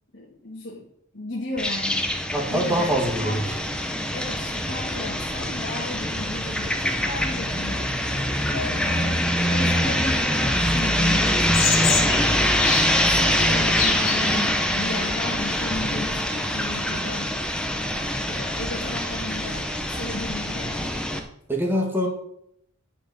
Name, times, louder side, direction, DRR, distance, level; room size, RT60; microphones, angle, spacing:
voice 1, 0.1-0.9 1.1-2.1 2.5-3.4 4.1-8.1 8.5-12.3 13.0-17.4 18.3-21.0, left 2 dB, 60° left, -5 dB, 1.7 m, -35 dB
bird and cars, 1.6-21.2, equal, 5° left, 0.8 m, -24 dB
voice 2, 2.3-3.4 21.5-22.1, equal, 10° right, 0 dB, 2.0 m, -23 dB
sound 1, 11.4-16.0 16.3-16.8 18.2-18.3 18.6-18.7 18.9-20.8, left 6 dB, 90° left, 1.6 m, -30 dB
10.0 x 4.5 x 6.1 m, 0.72 s
head